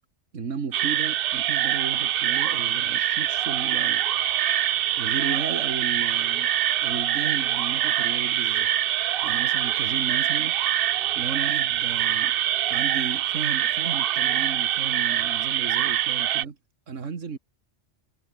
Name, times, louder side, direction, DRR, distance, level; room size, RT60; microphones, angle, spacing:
voice 1, 0.3-4.0 5.0-6.5 6.8-8.7 9.2-10.6 11.1-12.4 12.7-16.6 16.9-17.4, right 5 dB, 90° right, 2.1 m, -34 dB
sound 1, 0.7-16.4, right 11 dB, 60° right, 0.7 m, -24 dB
omnidirectional pair, 1.2 m